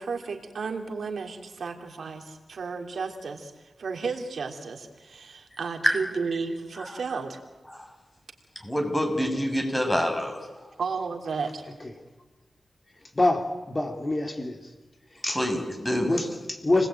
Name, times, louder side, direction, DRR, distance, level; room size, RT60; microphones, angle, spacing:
voice 1, 0.0-7.4 10.8-11.6, right 5 dB, 75° right, 4 dB, 3.3 m, -33 dB
voice 2, 8.6-10.4 15.3-16.2, equal, 15° left, 4 dB, 7.6 m, -26 dB
voice 3, 13.2-14.6 15.2-15.4 16.0-16.9, left 2 dB, 30° left, 4 dB, 3.5 m, -25 dB
30.0 x 20.0 x 9.2 m, 1.2 s
cardioid pair, 65°, 0 cm